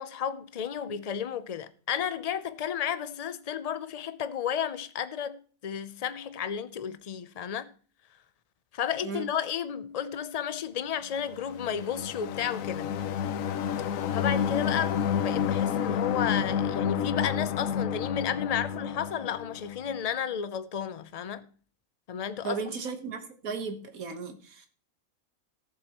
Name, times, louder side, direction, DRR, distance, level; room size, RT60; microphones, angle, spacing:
voice 1, 0.0-7.7 8.7-12.9 14.1-21.5 22.1-22.6, left 8 dB, 50° left, 0.4 m, -32 dB
sound 1, 11.3-20.0, left 8 dB, 75° left, 1.0 m, -30 dB
voice 2, 22.4-24.7, right 4 dB, 85° right, 1.7 m, -35 dB
16.5 x 7.2 x 3.0 m
omnidirectional pair, 1.4 m